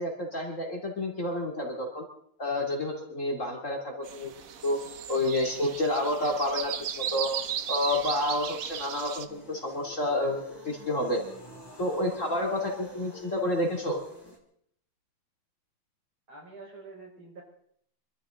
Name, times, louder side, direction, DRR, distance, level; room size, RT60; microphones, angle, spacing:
voice 1, 0.0-2.0 2.4-4.3 4.6-4.8 5.1-7.3 7.7-11.2 11.8-14.0, left 1 dB, 35° left, 0 dB, 3.1 m, -29 dB
sound 1, 4.0-9.2, right 8 dB, 55° right, 1.0 m, -36 dB
sound 2, 9.3-14.4, left 1 dB, 10° left, 2.9 m, -48 dB
voice 2, 16.3-17.4, right 3 dB, 75° right, 0 dB, 5.3 m, -46 dB
26.0 x 13.0 x 3.8 m, 0.67 s
omnidirectional pair, 2.3 m